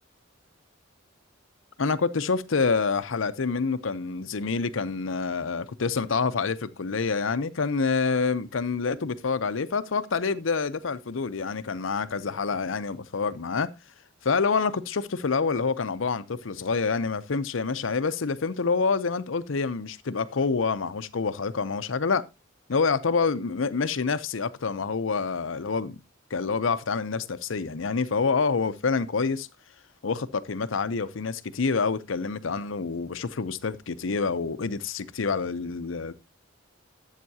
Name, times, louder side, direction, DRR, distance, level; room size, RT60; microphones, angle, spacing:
voice 1, 1.8-13.7 14.2-22.2 22.7-26.0 26.3-29.5 30.0-36.1, left 4 dB, 75° left, 0.7 m, -27 dB
12.5 x 8.2 x 2.8 m
head